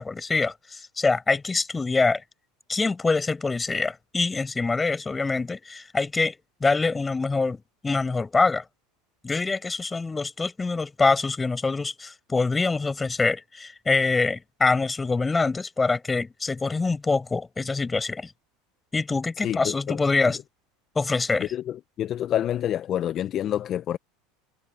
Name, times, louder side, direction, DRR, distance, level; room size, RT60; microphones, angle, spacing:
voice 1, 0.0-2.2 2.7-8.6 9.2-18.3 18.9-20.4 21.0-21.5, left 3 dB, 15° left, 5.7 m, -25 dB
voice 2, 19.4-20.0 20.3-20.4 21.4-24.0, left 11 dB, 45° left, 1.0 m, -28 dB
hypercardioid pair, 95°, 0 cm